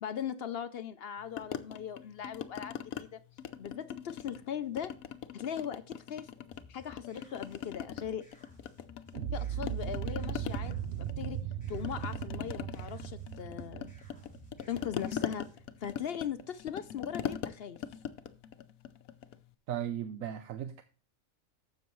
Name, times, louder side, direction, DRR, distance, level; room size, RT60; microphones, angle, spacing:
voice 1, 0.0-3.2 3.6-4.9 5.3-6.3 6.7-8.3 9.3-11.4 11.7-13.9 14.7-15.5 15.8-17.8, left 8 dB, 60° left, 0.7 m, -39 dB
sound 1, 1.4-3.0 3.4-4.5 4.8-6.6 6.9-9.3 9.6-19.4, left 9 dB, 85° left, 1.1 m, -41 dB
sound 2, 6.5-15.6, left 3 dB, 5° left, 5.5 m, -58 dB
sound 3, 9.1-15.2, right 10 dB, 55° right, 0.9 m, -38 dB
voice 2, 19.7-20.8, right 10 dB, 75° right, 1.1 m, -36 dB
12.5 x 7.6 x 3.1 m
omnidirectional pair, 1.4 m